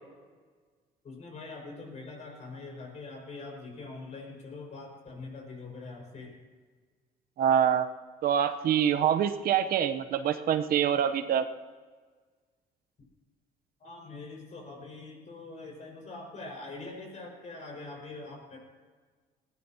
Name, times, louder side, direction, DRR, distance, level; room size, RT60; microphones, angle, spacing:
voice 1, 1.0-6.3 13.8-18.6, left 3 dB, 45° left, 0 dB, 5.6 m, -43 dB
voice 2, 7.4-7.9 8.2-11.4, right 9 dB, 65° right, 9 dB, 0.9 m, -25 dB
20.0 x 16.5 x 2.9 m, 1.5 s
cardioid pair, 110°, 17 cm